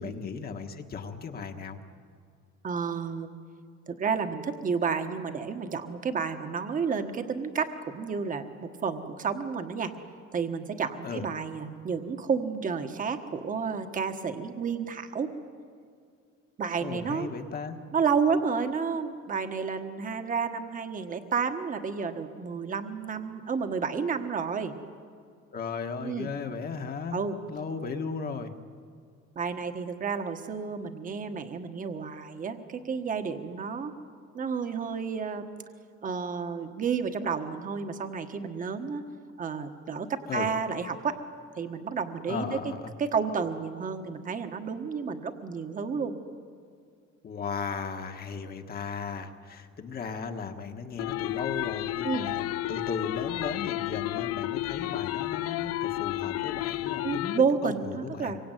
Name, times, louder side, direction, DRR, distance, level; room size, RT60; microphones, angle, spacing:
voice 1, 0.0-1.8 11.0-11.2 16.8-17.8 25.5-27.2 27.5-28.5 40.3-40.5 42.3-42.9 47.2-58.4, left 5 dB, 30° left, 5 dB, 1.5 m, -36 dB
voice 2, 2.6-3.3 3.9-9.9 10.3-15.3 16.6-17.3 17.9-24.7 26.0-26.3 27.1-27.4 29.3-33.9 34.3-35.5 36.0-39.0 39.4-41.2 41.5-42.6 43.0-46.2 52.0-52.3 57.0-58.4, right 5 dB, 30° right, 7 dB, 1.4 m, -31 dB
sound 1, 51.0-57.4, left 15 dB, 55° left, 0.6 m, -32 dB
26.0 x 24.0 x 9.2 m, 2.2 s
cardioid pair, 175°, 29 cm